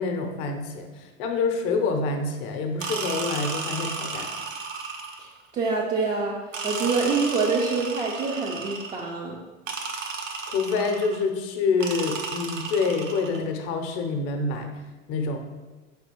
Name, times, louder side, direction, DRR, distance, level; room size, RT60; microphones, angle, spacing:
voice 1, 0.0-4.3 10.5-14.7 15.1-15.4, left 4 dB, 45° left, 5 dB, 0.6 m, -27 dB
sound 1, 2.8-5.4 6.5-9.1 9.7-11.2 11.8-13.4, right 4 dB, 90° right, 0.5 m, -33 dB
voice 2, 5.2-6.4 6.6-9.4, right 4 dB, 20° right, -3 dB, 0.3 m, -26 dB
4.3 x 3.3 x 2.9 m, 1.2 s
figure-of-eight pair, 80°, 38 cm